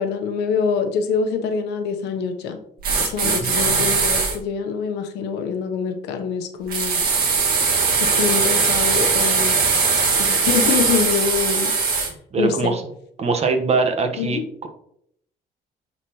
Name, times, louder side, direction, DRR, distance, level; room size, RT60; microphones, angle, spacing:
voice 1, 0.0-2.6 3.0-7.0 8.0-9.5 9.9-12.1 12.4-12.7 14.2-14.4, left 6 dB, 85° left, 6 dB, 0.9 m, -25 dB
sound 1, 2.8-4.4 6.7-12.1, right 4 dB, 60° right, 1.8 m, -20 dB
voice 2, 3.2-3.9 12.3-12.8 13.2-14.7, right 4 dB, 40° right, 6 dB, 1.1 m, -23 dB
9.3 x 4.2 x 3.0 m, 0.69 s
cardioid pair, 110°, 17 cm